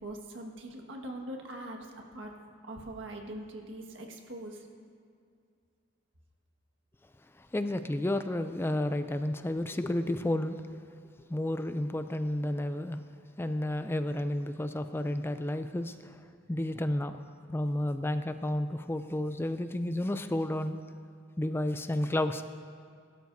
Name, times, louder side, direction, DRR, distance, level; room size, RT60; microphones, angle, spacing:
voice 1, 0.0-1.8 2.1-2.3 2.7-4.6, right 1 dB, 75° right, 1 dB, 1.7 m, -42 dB
voice 2, 7.5-10.6 11.3-13.0 13.4-16.1 16.5-17.2 17.5-20.8 21.4-22.4, left 1 dB, 10° left, 9 dB, 0.4 m, -31 dB
20.0 x 13.0 x 2.7 m, 2.3 s
head